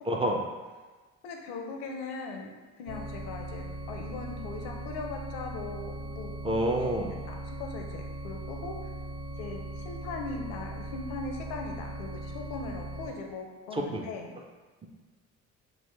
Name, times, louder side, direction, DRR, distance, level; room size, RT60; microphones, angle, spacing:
voice 1, 0.1-0.4 6.4-7.1 13.7-14.0, right 1 dB, 15° right, 1 dB, 0.3 m, -28 dB
voice 2, 1.2-6.3 6.7-6.9 7.3-8.9 9.4-14.3, left 3 dB, 70° left, 2 dB, 0.6 m, -39 dB
sound 1, 2.9-13.1, right 1 dB, 40° right, 0.8 m, -39 dB
3.4 x 2.1 x 3.2 m, 1.3 s
hypercardioid pair, 50°, 41 cm